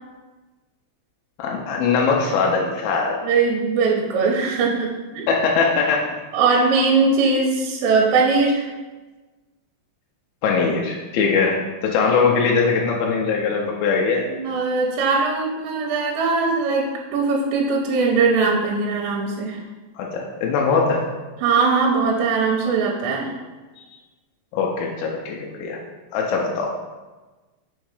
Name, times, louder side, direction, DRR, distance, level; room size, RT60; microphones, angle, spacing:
voice 1, 1.4-3.2 5.3-6.0 10.4-14.2 20.0-21.1 24.5-25.8 26.1-26.7, left 5 dB, 85° left, -1 dB, 2.1 m, -21 dB
voice 2, 3.2-5.3 6.3-8.7 14.3-19.6 21.4-23.3, right 4 dB, 85° right, -1 dB, 2.9 m, -20 dB
6.1 x 3.7 x 4.8 m, 1.2 s
omnidirectional pair, 5.1 m